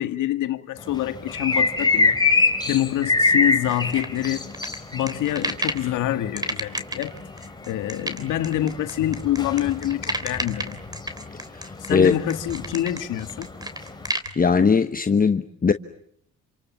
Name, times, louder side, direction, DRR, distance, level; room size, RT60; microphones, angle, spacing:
voice 1, 0.0-2.2 2.7-4.4 4.9-7.1 7.7-10.8 11.8-13.5, left 13 dB, 85° left, 2.0 m, -26 dB
sound 1, 0.8-14.1, left 3 dB, 15° left, 4.4 m, -26 dB
sound 2, 3.7-5.9 6.4-14.3, right 1 dB, 15° right, 3.2 m, -31 dB
voice 2, 11.5-12.1 14.4-15.7, left 5 dB, 30° left, 1.1 m, -19 dB
29.0 x 27.0 x 7.3 m
cardioid pair, 90°, 30 cm